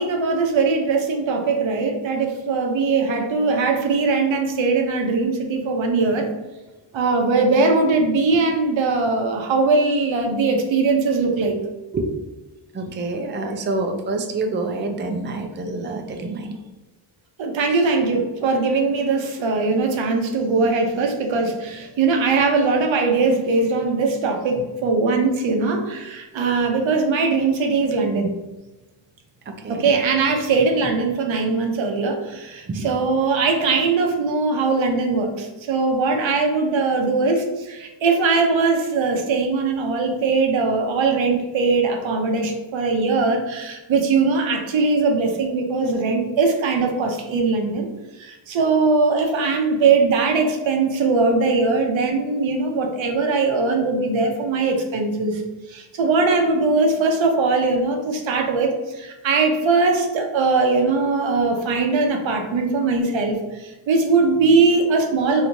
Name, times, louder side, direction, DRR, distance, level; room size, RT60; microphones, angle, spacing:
voice 1, 0.0-6.3 6.9-11.6 17.4-28.3 29.7-47.9 48.2-55.4 55.7-65.5, right 4 dB, 75° right, 3 dB, 0.7 m, -20 dB
voice 2, 12.7-16.6 29.5-29.9 32.7-32.9, right 3 dB, 25° right, 4 dB, 0.4 m, -27 dB
3.3 x 2.9 x 2.6 m, 1.1 s
cardioid pair, 85°, 47 cm